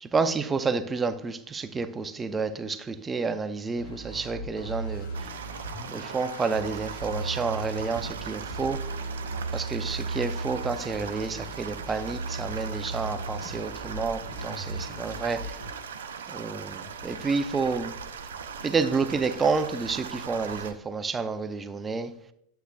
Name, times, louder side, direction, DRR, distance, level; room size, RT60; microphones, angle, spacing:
voice 1, 0.0-5.0 5.9-8.8 9.5-15.4 16.3-17.9 18.6-22.1, right 4 dB, 15° right, 0.6 m, -29 dB
sound 1, 3.7-15.7, right 2 dB, 65° left, 2.2 m, -37 dB
sound 2, 5.1-20.7, right 6 dB, 65° right, 0.7 m, -39 dB
11.5 x 7.8 x 2.4 m
figure-of-eight pair, 90°, 0 cm